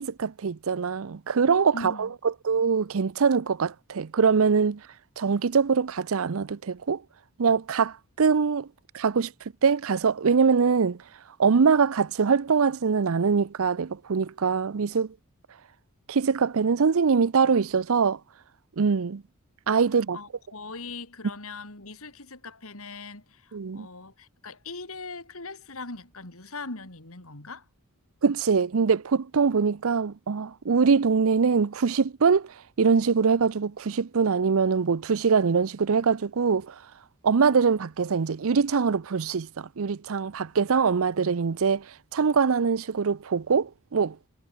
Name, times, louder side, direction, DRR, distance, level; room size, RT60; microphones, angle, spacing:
voice 1, 0.0-2.1 2.4-4.8 5.2-7.0 7.4-8.7 8.9-9.3 9.6-11.0 11.4-15.1 16.1-18.2 18.8-19.2 19.7-20.2 23.5-23.9 28.2-32.5 32.8-36.7 37.2-41.8 42.1-44.2, right 5 dB, 65° right, 0.6 m, -23 dB
voice 2, 1.7-2.2 20.1-27.7, left 3 dB, 65° left, 3.8 m, -40 dB
head